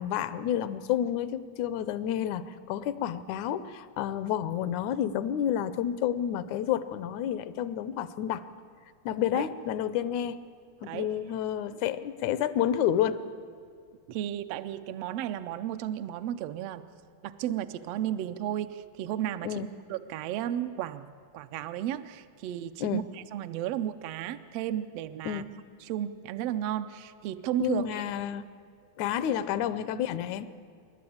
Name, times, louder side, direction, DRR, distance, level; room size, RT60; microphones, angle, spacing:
voice 1, 0.0-8.4 9.1-10.4 10.8-13.2 19.4-19.7 22.8-23.0 25.3-25.5 27.6-28.5 29.0-30.5, left 10 dB, 80° left, 14 dB, 2.1 m, -30 dB
voice 2, 14.1-16.9 17.2-21.1 21.3-25.4 25.8-27.9, right 11 dB, 75° right, 10 dB, 1.5 m, -33 dB
27.0 x 12.0 x 8.6 m, 2.3 s
omnidirectional pair, 3.3 m